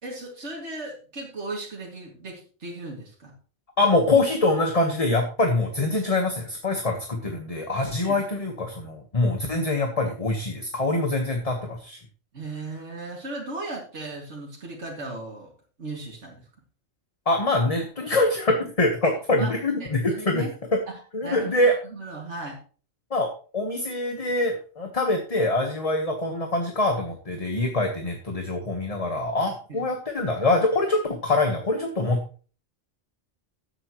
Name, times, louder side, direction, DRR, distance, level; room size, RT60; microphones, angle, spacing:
voice 1, 0.0-3.3 8.0-8.2 12.3-15.5 15.8-16.4 19.4-19.5 19.8-20.5 21.2-22.6 29.7-29.8, right 2 dB, 65° right, -2 dB, 2.7 m, -36 dB
voice 2, 3.8-12.0 17.3-20.5 21.1-21.7 23.1-23.3 23.5-32.2, left 2 dB, 30° left, 3 dB, 1.4 m, -24 dB
14.5 x 8.3 x 3.1 m, 0.38 s
omnidirectional pair, 1.3 m